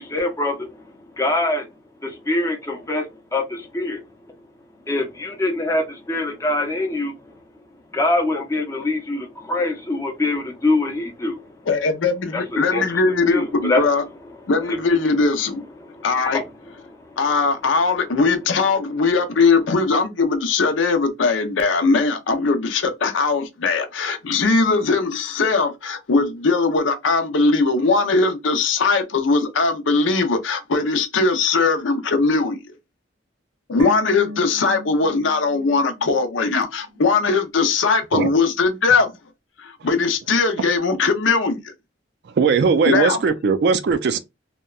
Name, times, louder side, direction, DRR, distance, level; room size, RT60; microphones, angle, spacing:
voice 1, 0.0-1.7 2.0-4.0 4.9-7.2 7.9-11.5 12.3-13.0 13.3-13.8 14.6-14.8 15.8-16.4 16.9-17.2, left 2 dB, 15° left, 0.6 m, -24 dB
voice 2, 11.7-14.0 14.5-15.6 16.0-16.4 17.2-32.7 33.7-39.1 39.6-41.6 42.8-43.2, left 4 dB, 80° left, 0.6 m, -20 dB
sound 1, 33.8-37.1 37.4-37.5, equal, 85° right, 0.9 m, -38 dB
voice 3, 42.4-44.2, right 5 dB, 60° right, 0.4 m, -18 dB
2.8 x 2.2 x 2.3 m
head